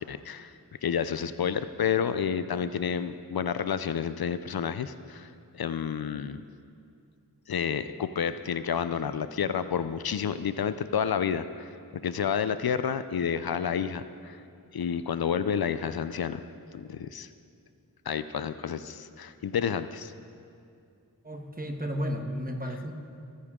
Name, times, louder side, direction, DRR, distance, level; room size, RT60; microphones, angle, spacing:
voice 1, 0.1-0.5 0.8-6.4 7.5-11.8 12.0-14.4 14.7-16.4 16.7-17.3 18.1-20.1, left 7 dB, 75° left, 12 dB, 0.5 m, -30 dB
voice 2, 21.2-22.9, equal, 25° right, 4 dB, 1.3 m, -33 dB
22.0 x 10.0 x 3.7 m, 2.4 s
wide cardioid pair, 55°, 37 cm